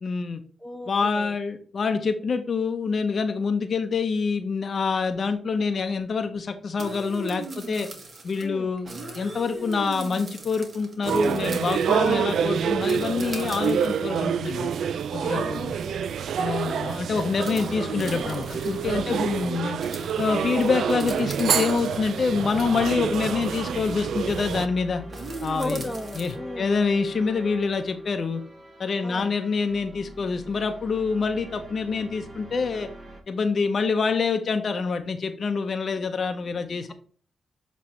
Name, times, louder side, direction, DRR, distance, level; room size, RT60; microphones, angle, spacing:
voice 1, 0.0-0.4 0.9-7.9 8.2-14.7 15.1-15.8 16.4-19.8 20.2-25.0 25.4-25.8 26.2-28.4 28.8-32.9 33.3-36.9, left 5 dB, 55° left, 7 dB, 0.7 m, -26 dB
voice 2, 0.6-1.3 8.4-8.7 15.3-16.1 18.9-19.4 25.5-26.8 29.0-29.4, left 1 dB, 10° left, 6 dB, 1.1 m, -36 dB
sound 1, 6.8-8.4 8.8-12.3 12.9-14.2 15.0-15.1 15.6-15.7 16.0-16.2 17.4-19.0 19.8-22.1 23.5-23.6 25.1-26.3, right 3 dB, 50° right, 1.9 m, -38 dB
sound 2, 11.1-24.7, right 8 dB, 75° right, 0.3 m, -27 dB
sound 3, 17.7-33.2, equal, 30° right, 1.7 m, -44 dB
7.7 x 3.1 x 4.3 m, 0.43 s
cardioid pair, 60°, 0 cm